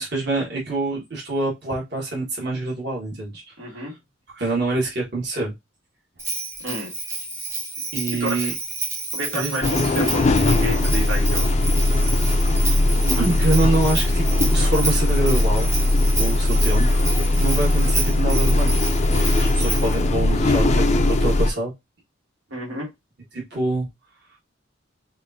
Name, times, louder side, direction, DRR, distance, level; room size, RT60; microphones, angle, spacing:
voice 1, 0.0-3.8 4.3-5.5 7.9-8.5 9.2-9.6 13.0-15.8 16.1-17.0 17.4-18.7 19.5-21.7 23.3-23.9, right 2 dB, 55° right, 1.6 m, -25 dB
voice 2, 3.6-3.9 6.6-6.9 8.2-8.5 9.1-11.6 22.5-22.9, equal, 85° right, 2.0 m, -30 dB
Bell, 6.2-20.0, right 2 dB, 15° right, 0.7 m, -30 dB
sound 1, 9.6-21.5, left 2 dB, 35° left, 0.4 m, -19 dB
4.8 x 2.6 x 2.7 m
head